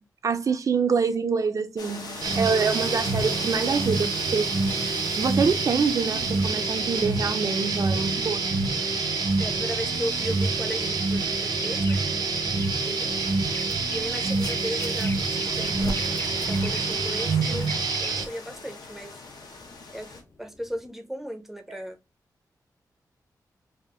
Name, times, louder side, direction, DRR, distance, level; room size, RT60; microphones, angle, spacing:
voice 1, 0.2-4.5 5.1-8.8 15.6-15.7, right 5 dB, 50° right, 0.5 m, -26 dB
sound 1, 1.8-20.2, left 3 dB, 75° left, 1.0 m, -41 dB
sound 2, 2.2-18.2, right 3 dB, 85° right, 0.8 m, -26 dB
voice 2, 9.4-12.0 12.5-13.1 13.9-16.1 16.5-19.1 19.9-22.0, equal, 5° right, 0.6 m, -36 dB
sound 3, 11.4-20.9, left 3 dB, 40° left, 0.7 m, -43 dB
3.5 x 2.5 x 3.5 m
wide cardioid pair, 145°, 7 cm